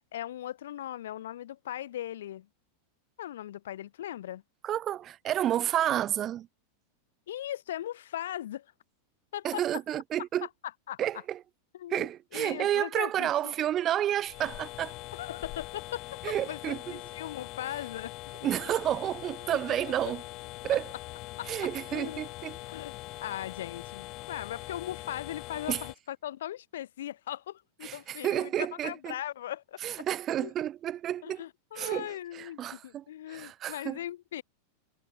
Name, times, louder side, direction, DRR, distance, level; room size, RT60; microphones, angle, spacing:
voice 1, 0.1-2.5 3.2-4.4 7.3-8.7 9.3-9.6 10.4-10.5 10.9-11.0 11.7-13.5 15.1-18.1 19.5-19.6 20.0-20.1 21.4-21.5 21.9-22.2 22.7-22.9 23.2-30.1 30.4-30.5 31.2-34.4, left 12 dB, 90° left, 0.5 m, -39 dB
voice 2, 4.6-6.5 9.4-10.5 11.0-11.4 11.9-14.9 16.2-17.0 18.4-20.2 20.6-20.9 21.5-22.6 25.7-25.8 27.8-29.1 29.8-31.4 31.8-33.0 33.3-34.0, right 11 dB, 30° right, 0.4 m, -30 dB
sound 1, 14.2-25.9, left 20 dB, 40° left, 1.2 m, -42 dB
supercardioid pair, 150°, 0 cm